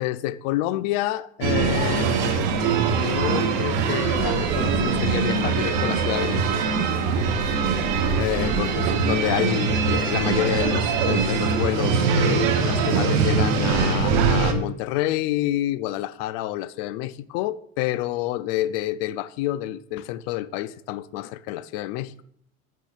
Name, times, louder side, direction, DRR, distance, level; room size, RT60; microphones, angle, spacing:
voice 1, 0.0-2.5 2.9-6.7 7.1-7.2 8.1-22.2, left 14 dB, 70° left, 0.5 m, -28 dB
sound 1, 1.4-14.5, right 5 dB, 65° right, 1.0 m, -22 dB
9.1 x 4.6 x 2.4 m
supercardioid pair, 100°, 39 cm